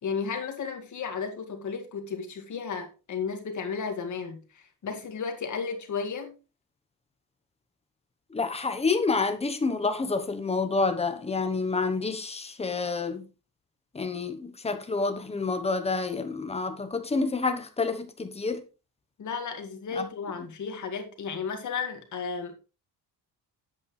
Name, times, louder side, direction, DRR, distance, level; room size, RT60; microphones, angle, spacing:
voice 1, 0.0-6.4 19.2-22.5, left 5 dB, 45° left, 2.0 m, -34 dB
voice 2, 8.3-13.3 13.9-18.6 20.0-20.1, left 4 dB, 15° left, 1.0 m, -28 dB
9.7 x 8.4 x 3.3 m
cardioid pair, 175°, 40 cm